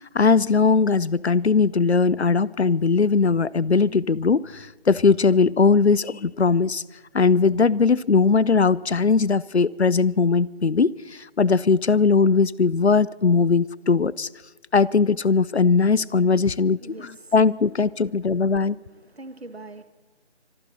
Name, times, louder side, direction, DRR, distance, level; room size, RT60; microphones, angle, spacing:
voice 1, 0.1-6.8 7.1-14.3 14.7-18.8, left 4 dB, 75° left, 22 dB, 0.7 m, -20 dB
voice 2, 16.8-17.3 18.7-19.8, right 2 dB, 65° right, 12 dB, 1.5 m, -42 dB
25.0 x 13.5 x 4.2 m, 1.2 s
figure-of-eight pair, 175°, 34 cm